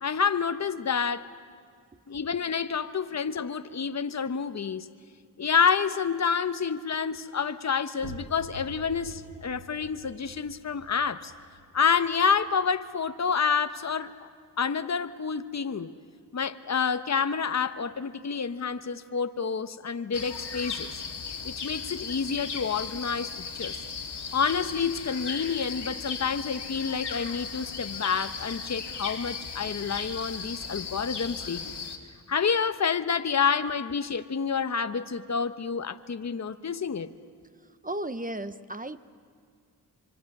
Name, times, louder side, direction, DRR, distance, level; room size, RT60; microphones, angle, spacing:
voice 1, 0.0-1.3 2.1-4.9 5.4-11.3 11.7-14.3 14.6-15.9 16.3-20.9 21.4-23.8 24.3-31.7 32.3-37.1, left 6 dB, 40° left, 10 dB, 1.0 m, -28 dB
sound 1, 8.0-13.5, right 1 dB, 70° right, 1.8 m, -47 dB
sound 2, 20.1-32.0, left 5 dB, 75° left, 2.3 m, -37 dB
voice 2, 37.6-39.0, right 1 dB, 20° right, 12 dB, 0.9 m, -35 dB
26.0 x 24.0 x 6.7 m, 2.2 s
cardioid pair, 50°, 41 cm